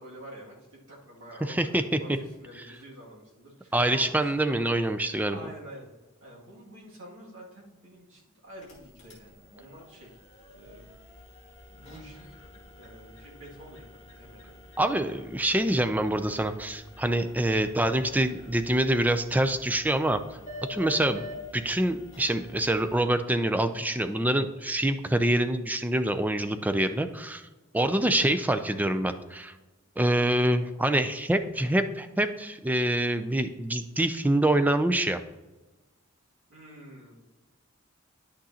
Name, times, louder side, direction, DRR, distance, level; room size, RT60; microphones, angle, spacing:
voice 1, 0.0-4.6 5.3-5.9 6.2-10.2 10.5-10.9 11.7-12.3 12.8-14.6 27.7-28.0 36.5-37.2, right 1 dB, 65° right, -3 dB, 2.2 m, -48 dB
voice 2, 1.4-2.0 3.7-5.4 14.8-20.2 20.7-21.2 21.5-27.4 27.7-29.6 30.0-35.2, right 1 dB, 10° right, 9 dB, 0.4 m, -25 dB
sound 1, 8.5-22.9, left 1 dB, 35° left, 2.1 m, -47 dB
10.0 x 6.2 x 2.8 m, 1.1 s
head